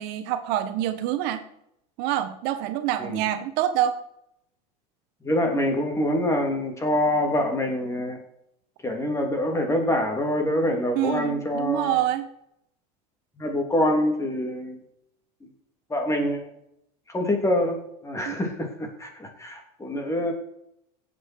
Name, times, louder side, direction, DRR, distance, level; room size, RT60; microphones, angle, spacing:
voice 1, 0.0-1.4 2.0-4.0 10.9-12.3 18.3-18.4, right 12 dB, 60° right, 9 dB, 1.2 m, -26 dB
voice 2, 5.2-8.2 8.8-12.0 13.4-14.8 15.4-15.5 15.9-16.5 17.1-20.3, left 1 dB, 15° left, 3 dB, 3.4 m, -25 dB
16.5 x 8.0 x 4.6 m, 0.77 s
supercardioid pair, 115°, 19 cm